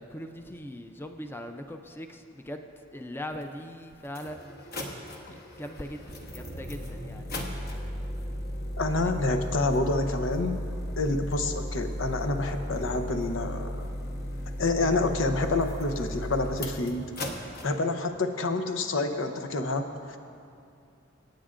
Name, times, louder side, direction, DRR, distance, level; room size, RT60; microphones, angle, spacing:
voice 1, 0.0-2.6 2.9-4.6 5.6-6.0 6.3-7.2 9.0-9.1, left 1 dB, 10° left, 5 dB, 0.4 m, -40 dB
sound 1, 3.4-3.5 4.0-17.7, equal, 55° left, 1.1 m, -36 dB
voice 2, 8.8-10.6 11.0-13.9 14.6-17.0 17.6-20.2, left 2 dB, 90° left, 6 dB, 0.8 m, -28 dB
23.5 x 8.9 x 2.5 m, 2.5 s
head